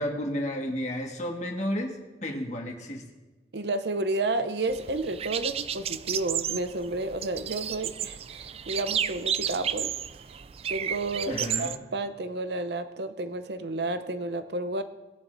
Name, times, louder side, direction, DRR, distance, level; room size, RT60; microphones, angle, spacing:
voice 1, 0.0-3.0 11.3-11.7, equal, 40° left, 2 dB, 1.6 m, -32 dB
voice 2, 3.5-9.9 10.7-14.8, right 2 dB, 75° right, 10 dB, 0.7 m, -31 dB
sound 1, 4.7-11.8, right 9 dB, 35° right, 0.3 m, -32 dB
19.5 x 10.5 x 2.6 m, 1.2 s
head